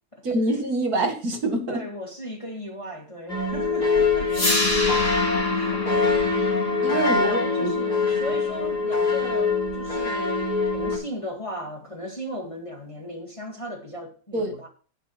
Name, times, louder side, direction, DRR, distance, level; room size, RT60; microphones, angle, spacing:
voice 1, 0.2-1.8 6.8-7.8 14.3-14.5, right 2 dB, 70° right, 2.6 m, -25 dB
voice 2, 1.7-4.5 5.5-5.8 7.2-14.7, equal, 20° left, 1.9 m, -37 dB
sound 1, 3.3-11.0, left 4 dB, 80° left, 4.2 m, -24 dB
sound 2, 4.3-10.3, left 2 dB, 60° left, 3.6 m, -29 dB
10.0 x 9.0 x 4.5 m
omnidirectional pair, 1.6 m